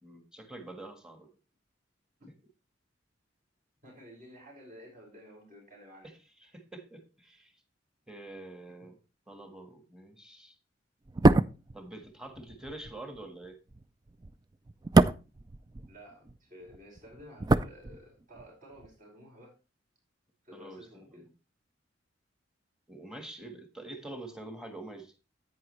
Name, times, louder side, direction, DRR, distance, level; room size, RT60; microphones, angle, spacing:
voice 1, 0.0-1.3 6.4-7.5 8.1-9.0 9.3-10.6 11.7-13.6 20.5-20.8 21.1-21.3 22.9-25.1, right 2 dB, 5° right, 1.5 m, -46 dB
voice 2, 3.8-6.1 15.9-19.5 20.4-21.3, equal, 45° right, 5.2 m, -52 dB
sound 1, 11.1-16.4 16.6-18.5 18.7-18.9, right 2 dB, 20° right, 0.4 m, -27 dB
10.5 x 8.8 x 3.2 m
head